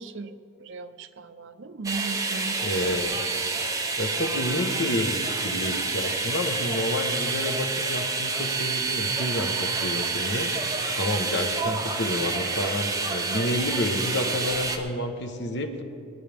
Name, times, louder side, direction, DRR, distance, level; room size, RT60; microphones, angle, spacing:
voice 1, 0.0-3.0, right 3 dB, 65° right, 10 dB, 0.6 m, -37 dB
sound 1, 1.8-14.8, right 3 dB, 15° right, 1.0 m, -28 dB
voice 2, 2.6-3.2 4.0-10.5 11.0-15.8, left 1 dB, 60° left, 5 dB, 1.2 m, -29 dB
23.0 x 9.7 x 3.5 m, 2.6 s
head